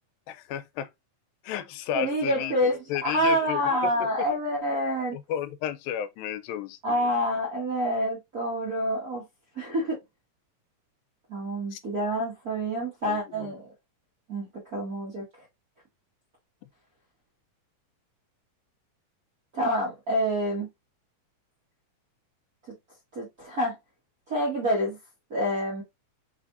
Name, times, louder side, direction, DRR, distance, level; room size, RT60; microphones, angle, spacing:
voice 1, 0.3-0.9 1.4-3.9 5.1-6.8 11.7-11.8 13.0-13.5, left 10 dB, 90° left, 2.4 m, -33 dB
voice 2, 1.9-5.2 6.8-9.2 9.6-10.0 11.3-13.7 14.3-15.2 19.5-20.7 23.1-23.7 24.3-25.0 25.3-25.8, equal, 55° right, 1.0 m, -27 dB
5.1 x 3.3 x 2.5 m
omnidirectional pair, 4.0 m